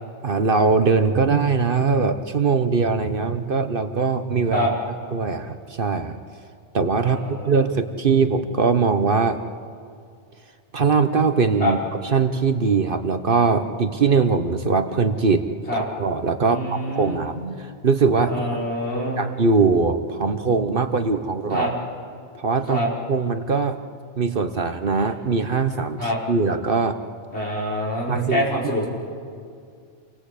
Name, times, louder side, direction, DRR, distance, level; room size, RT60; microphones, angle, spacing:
voice 1, 0.2-6.2 6.7-9.4 10.7-15.4 15.7-18.6 19.2-21.7 22.4-22.8 23.1-23.8 24.2-27.0 28.1-28.5, right 4 dB, 50° right, 8 dB, 1.1 m, -21 dB
voice 2, 7.0-7.5 11.6-11.7 15.7-15.8 16.4-17.2 18.3-19.2 21.5-21.7 22.7-22.9 26.0-26.2 27.3-28.9, equal, 65° left, -4 dB, 5.4 m, -25 dB
28.0 x 19.0 x 8.4 m, 2.3 s
omnidirectional pair, 1.2 m